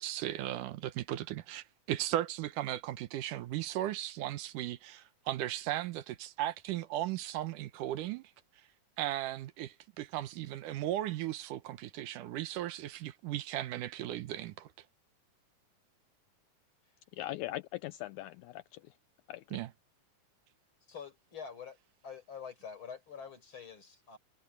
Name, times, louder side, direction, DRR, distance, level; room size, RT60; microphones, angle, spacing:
voice 1, 0.0-8.3 9.0-14.7 19.5-19.7, right 13 dB, 80° right, 2.5 m, -36 dB
voice 2, 17.2-18.9 19.3-19.6, left 16 dB, 80° left, 1.8 m, -40 dB
voice 3, 20.9-21.8 22.0-24.2, left 6 dB, 40° left, 5.2 m, -46 dB
omnidirectional pair, 3.6 m